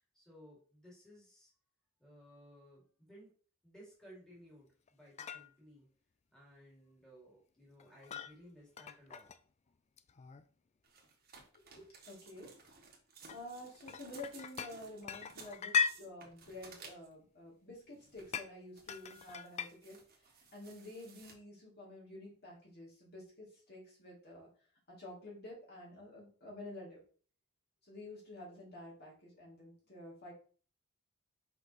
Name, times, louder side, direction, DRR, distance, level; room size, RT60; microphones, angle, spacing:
voice 1, 0.0-1.5 2.0-3.3 3.6-5.9 6.3-9.3, equal, 5° left, -5 dB, 2.4 m, -58 dB
sound 1, 4.9-5.0 5.2-5.5 7.8-8.3 8.8-9.4 10.0-10.4 11.5-11.8 12.4-12.5 13.3-14.7 15.0-16.0 18.3-18.5 18.9-19.7, left 6 dB, 30° left, 0.3 m, -37 dB
sound 2, 10.8-17.2 17.9-18.4 18.8-21.3, right 4 dB, 45° right, 1.4 m, -58 dB
voice 2, 11.6-12.5 13.3-24.5 24.9-27.0 27.8-30.3, left 1 dB, 45° left, -4 dB, 2.8 m, -50 dB
5.9 x 5.3 x 3.0 m, 0.41 s
head